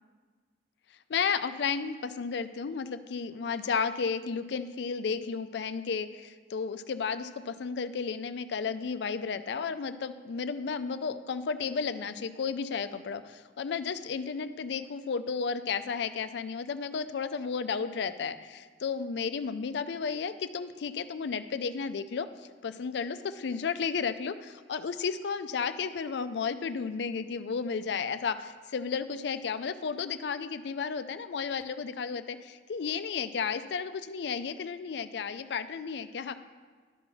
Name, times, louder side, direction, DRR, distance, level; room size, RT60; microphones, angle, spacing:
voice 1, 1.1-36.4, left 5 dB, 70° left, 12 dB, 0.4 m, -33 dB
11.5 x 3.9 x 5.9 m, 1.5 s
head